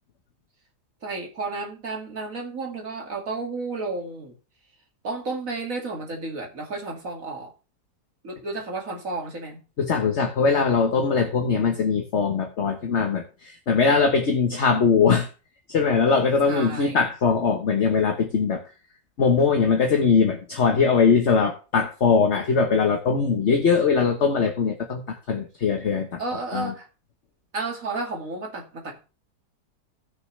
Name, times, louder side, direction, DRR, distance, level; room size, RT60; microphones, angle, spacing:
voice 1, 1.0-4.4 5.0-7.5 8.2-9.6 16.4-17.0 26.2-26.9 27.5-29.0, right 3 dB, 55° right, 2.7 m, -32 dB
voice 2, 9.8-15.3 15.7-18.6 19.2-26.2 26.5-26.7, left 5 dB, 45° left, 1.4 m, -21 dB
16.0 x 6.7 x 3.3 m
omnidirectional pair, 1.7 m